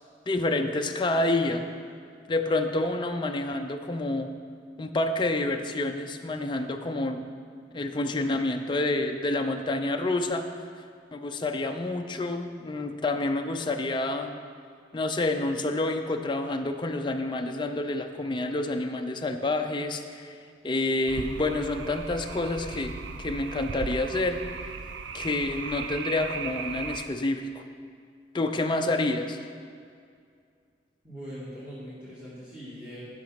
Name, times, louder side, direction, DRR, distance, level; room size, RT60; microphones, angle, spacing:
voice 1, 0.3-1.6 2.3-4.3 4.8-7.3 7.7-10.5 11.1-14.4 14.9-20.4 20.6-24.4 25.1-27.6 28.3-29.4, left 2 dB, 25° left, 5 dB, 0.5 m, -28 dB
sound 1, 21.1-27.1, right 5 dB, 85° right, 0.5 m, -37 dB
voice 2, 31.0-33.1, equal, 10° right, -12 dB, 2.1 m, -41 dB
10.5 x 5.9 x 5.7 m, 2.2 s
head